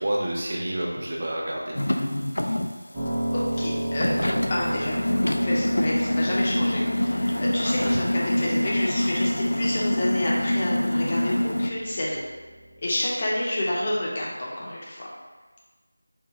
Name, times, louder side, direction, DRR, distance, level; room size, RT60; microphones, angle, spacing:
voice 1, 0.0-1.8 7.6-8.0, right 1 dB, 35° right, -3 dB, 0.6 m, -29 dB
sound 1, 1.7-2.7 3.1-3.2 3.6-3.7 4.0-11.7, left 1 dB, 70° left, 0.3 m, -25 dB
Piano, 2.9-13.1, right 1 dB, 15° right, 1.0 m, -35 dB
voice 2, 3.3-5.0 5.4-12.2 12.8-15.1, left 1 dB, 25° left, -5 dB, 0.6 m, -29 dB
4.5 x 2.5 x 3.4 m, 1.3 s
figure-of-eight pair, 170°, 0 cm